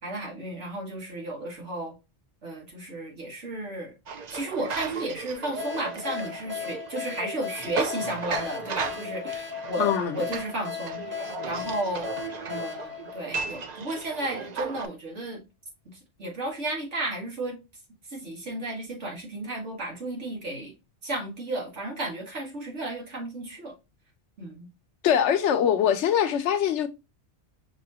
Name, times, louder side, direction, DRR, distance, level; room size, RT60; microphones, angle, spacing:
voice 1, 0.0-2.0 2.4-3.9 4.3-12.1 12.5-15.4 15.9-17.6 18.1-20.7 21.0-23.7 24.4-24.7, right 1 dB, 80° right, 2.1 m, -33 dB
sound 1, 4.1-14.9, right 5 dB, 55° right, 0.5 m, -36 dB
sound 2, 5.6-14.0, left 8 dB, 10° right, 0.8 m, -37 dB
voice 2, 9.8-10.2 25.0-26.9, left 9 dB, 75° left, 1.0 m, -23 dB
6.0 x 3.0 x 2.8 m
omnidirectional pair, 1.2 m